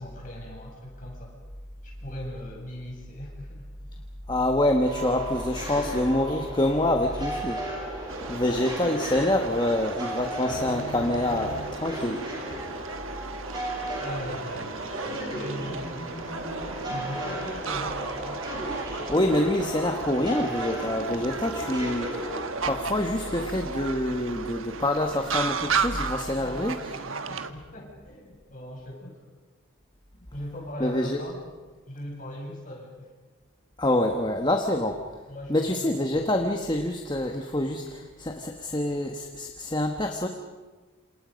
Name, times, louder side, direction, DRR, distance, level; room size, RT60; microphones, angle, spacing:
voice 1, 0.0-1.4 1.8-3.7 8.5-8.7 14.0-16.4 16.9-18.7 19.0-19.1 26.4-29.2 30.1-31.4 31.9-33.1 35.3-35.9 36.2-36.3, left 1 dB, 40° left, -1 dB, 7.4 m, -40 dB
voice 2, 4.3-7.6 8.3-12.2 19.1-26.8 30.8-31.2 33.8-35.0 35.5-40.3, left 1 dB, 20° left, 4 dB, 1.4 m, -26 dB
sound 1, 4.9-22.8, right 1 dB, 20° right, 7.5 m, -36 dB
sound 2, 6.4-7.1 10.5-13.6 14.1-16.7, equal, 65° left, 5.7 m, -44 dB
sound 3, 8.1-27.5, right 5 dB, 80° right, 1.3 m, -35 dB
28.0 x 27.5 x 5.3 m, 1.3 s
head